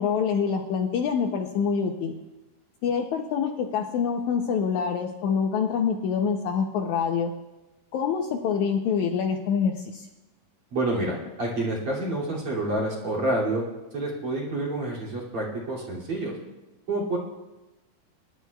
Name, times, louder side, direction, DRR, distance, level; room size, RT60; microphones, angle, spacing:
voice 1, 0.0-2.1 2.8-7.3 7.9-10.1, left 6 dB, 75° left, 3 dB, 1.9 m, -26 dB
voice 2, 10.7-13.6 13.9-16.3 16.9-17.2, right 2 dB, 45° right, -5 dB, 3.3 m, -28 dB
23.0 x 11.5 x 2.3 m, 1.1 s
omnidirectional pair, 3.9 m